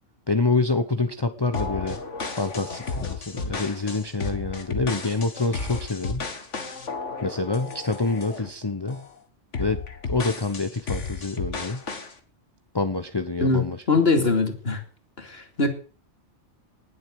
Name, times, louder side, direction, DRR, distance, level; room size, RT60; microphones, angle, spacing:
voice 1, 0.3-2.0 2.4-6.3 7.2-9.0 9.6-11.8 12.7-13.8 14.2-14.3, left 3 dB, 20° left, 8 dB, 1.0 m, -27 dB
sound 1, 1.5-8.5 8.9-9.1 9.5-12.1, left 4 dB, 80° left, 2.2 m, -33 dB
voice 2, 13.4-14.8 15.2-15.7, left 3 dB, 55° left, 6 dB, 3.2 m, -22 dB
19.5 x 8.0 x 7.9 m, 0.41 s
omnidirectional pair, 1.2 m